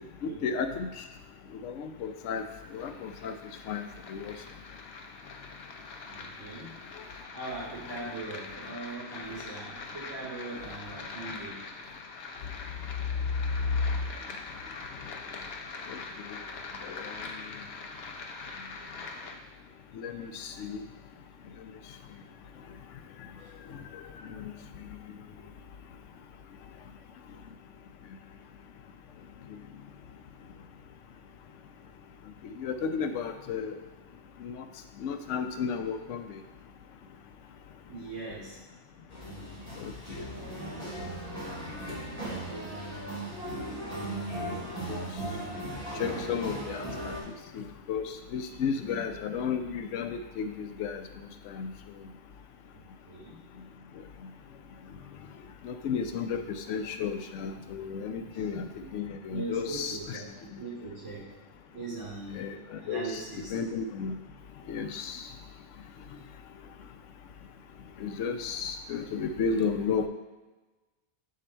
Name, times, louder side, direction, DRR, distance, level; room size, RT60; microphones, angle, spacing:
voice 1, 0.2-0.9 1.6-2.4 2.7-3.3 3.7-4.3 15.9-16.0 16.8-17.1 20.0-20.8 23.9-24.0 24.4-24.5 32.6-33.8 34.4-34.6 35.0-36.2 39.8-39.9 44.5-44.6 44.9-45.0 46.0-47.1 47.5-51.0 51.5-51.7 55.6-58.6 58.9-60.2 62.3-63.2 63.5-64.1 64.7-65.2 68.0-70.0, left 6 dB, 90° left, 7 dB, 1.0 m, -33 dB
sound 1, 2.0-19.3, left 4 dB, 60° left, 0.9 m, -43 dB
voice 2, 6.1-6.8 7.3-11.6 23.4-23.5 37.9-38.6 52.7-53.4 58.3-58.8 59.3-61.3 61.7-62.4 62.7-63.5, right 3 dB, 80° right, -6 dB, 2.9 m, -40 dB
sound 2, 39.1-47.2, right 1 dB, 30° right, 2.3 m, -37 dB
7.6 x 3.8 x 4.4 m, 1.2 s
omnidirectional pair, 1.2 m